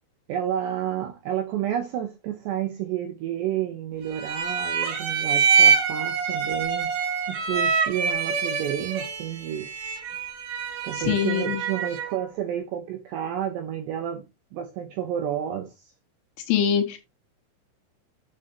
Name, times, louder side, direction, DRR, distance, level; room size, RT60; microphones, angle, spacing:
voice 1, 0.3-6.9 7.3-9.7 10.8-14.2 14.5-15.9, right 10 dB, 80° right, 2.4 m, -30 dB
sound 1, 4.1-12.2, right 6 dB, 65° right, 3.9 m, -25 dB
voice 2, 10.9-11.6 16.5-17.0, left 9 dB, 75° left, 3.5 m, -23 dB
9.8 x 7.7 x 2.9 m
omnidirectional pair, 5.9 m